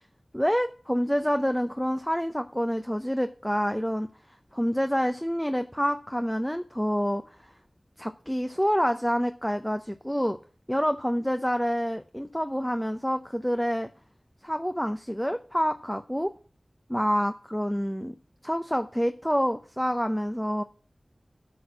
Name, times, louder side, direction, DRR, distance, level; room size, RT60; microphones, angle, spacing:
voice 1, 0.3-4.1 4.5-7.2 8.0-10.4 10.7-13.9 14.4-16.3 16.9-18.1 18.4-20.6, equal, 5° left, 7 dB, 0.7 m, -27 dB
9.3 x 6.2 x 6.2 m, 0.40 s
wide cardioid pair, 50°, 0 cm